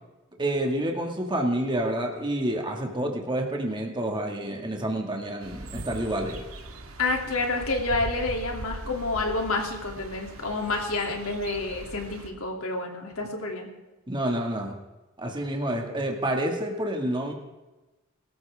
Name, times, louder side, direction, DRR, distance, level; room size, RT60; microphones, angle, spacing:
voice 1, 0.4-6.4 14.1-14.7 15.2-17.3, right 1 dB, 20° right, 1 dB, 2.1 m, -28 dB
sound 1, 5.4-12.3, right 1 dB, 75° right, 2.0 m, -40 dB
voice 2, 7.0-13.7, left 2 dB, 80° left, 1 dB, 3.0 m, -29 dB
23.5 x 13.5 x 3.7 m, 1.1 s
head